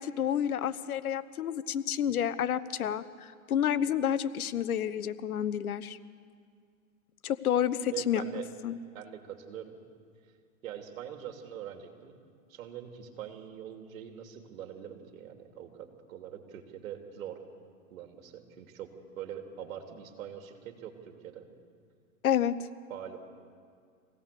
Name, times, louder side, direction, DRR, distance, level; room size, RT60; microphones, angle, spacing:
voice 1, 0.0-6.0 7.2-8.2 8.6-8.7 22.2-22.7, left 9 dB, 80° left, 15 dB, 1.1 m, -29 dB
voice 2, 7.9-8.5 8.9-9.8 10.6-12.1 12.5-17.4 17.9-21.5 22.9-23.2, right 9 dB, 65° right, 5 dB, 3.1 m, -43 dB
25.5 x 17.5 x 6.9 m, 2.2 s
hypercardioid pair, 130°, 42 cm